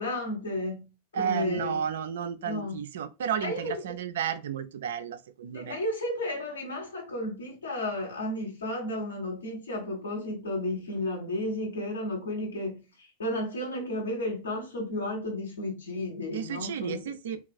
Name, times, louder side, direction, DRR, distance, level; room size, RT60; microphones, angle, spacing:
voice 1, 0.0-1.8 2.4-2.7 3.4-3.7 5.5-17.1, left 1 dB, 70° left, 1.1 m, -33 dB
voice 2, 1.1-5.8 16.3-17.4, right 8 dB, 60° right, 0.3 m, -32 dB
3.2 x 2.3 x 2.3 m
figure-of-eight pair, 90°, 0 cm